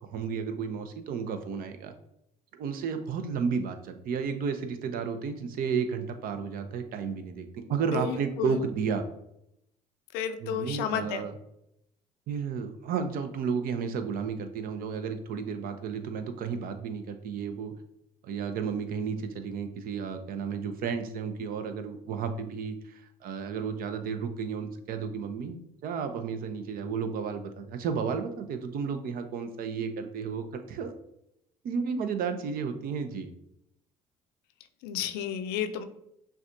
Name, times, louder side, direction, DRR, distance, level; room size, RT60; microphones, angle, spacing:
voice 1, 0.0-1.9 2.6-9.0 10.4-11.3 12.3-17.7 18.2-25.6 25.8-30.9 31.6-33.3, right 6 dB, 60° right, 8 dB, 0.6 m, -32 dB
voice 2, 7.9-8.6 10.1-11.2 34.8-35.8, left 8 dB, 75° left, 9 dB, 0.5 m, -31 dB
5.9 x 2.3 x 2.6 m, 0.79 s
hypercardioid pair, 60°, 17 cm